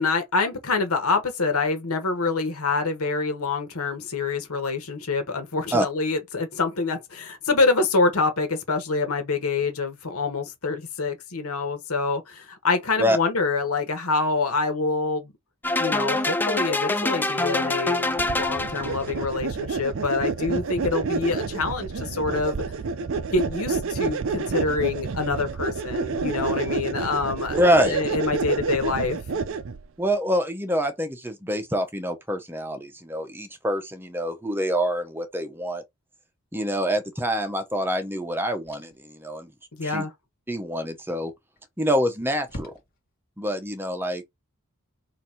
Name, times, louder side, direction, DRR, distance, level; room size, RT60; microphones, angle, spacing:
voice 1, 0.0-15.3 15.8-22.6 23.3-29.2 39.7-40.1, left 3 dB, 80° left, 1.3 m, -26 dB
sound 1, 15.6-19.1, left 2 dB, 10° left, 0.4 m, -25 dB
sound 2, 18.2-29.8, right 4 dB, 60° right, 0.5 m, -29 dB
voice 2, 27.5-28.0 30.0-35.8 36.5-39.5 39.8-40.1 40.5-41.3 41.8-42.7 43.4-44.2, equal, 10° right, 0.8 m, -25 dB
sound 3, 38.6-39.1 41.2-41.7 42.0-42.1 42.5-43.3, equal, 45° left, 1.4 m, -42 dB
4.1 x 2.7 x 4.3 m
head